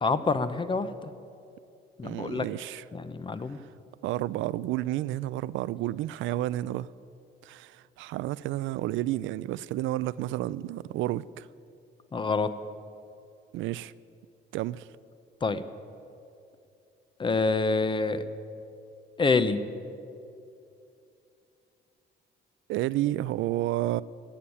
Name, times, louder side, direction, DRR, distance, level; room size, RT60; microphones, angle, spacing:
voice 1, 0.0-0.9 2.0-2.4 2.9-3.6 12.1-12.5 15.4-15.6 17.2-18.2 19.2-19.6, left 4 dB, 25° left, 0.8 m, -26 dB
voice 2, 2.0-2.8 4.0-6.9 7.4-11.5 13.5-13.9 14.5-14.9 22.7-24.0, right 15 dB, 85° right, 0.4 m, -31 dB
17.5 x 7.2 x 9.9 m
cardioid pair, 120°, 19 cm